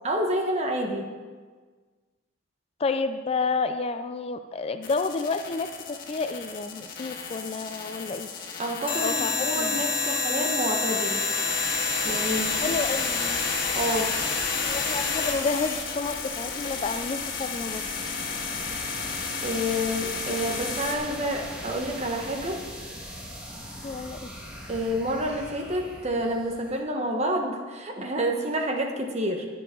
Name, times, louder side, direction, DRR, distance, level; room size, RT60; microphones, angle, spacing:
voice 1, 0.0-1.1 8.6-11.2 12.0-12.7 13.7-14.1 19.4-22.6 24.7-29.5, equal, 35° right, 3 dB, 1.3 m, -28 dB
voice 2, 2.8-8.3 9.0-9.8 12.6-13.4 14.6-17.8 23.8-24.2, left 4 dB, 30° left, 9 dB, 0.4 m, -30 dB
sound 1, 4.8-21.0, left 5 dB, 45° left, 1.9 m, -30 dB
sound 2, 11.5-26.8, equal, 5° right, 1.8 m, -41 dB
20.0 x 6.9 x 3.8 m, 1.5 s
head